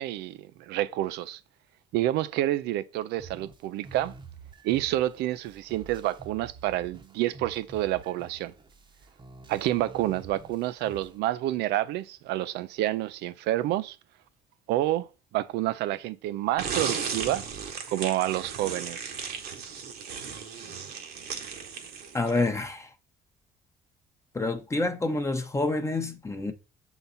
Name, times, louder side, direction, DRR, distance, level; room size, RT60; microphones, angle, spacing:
voice 1, 0.0-1.4 1.9-4.1 4.6-8.5 9.5-14.0 14.7-17.4 17.9-19.1, right 14 dB, 85° right, 0.5 m, -29 dB
sound 1, 3.2-11.2, right 5 dB, 30° right, 0.8 m, -48 dB
sound 2, 16.6-22.5, right 6 dB, 65° right, 1.2 m, -35 dB
voice 2, 22.1-22.9 24.3-26.5, left 2 dB, 15° left, 0.7 m, -28 dB
7.0 x 4.0 x 4.0 m
cardioid pair, 110°, 17 cm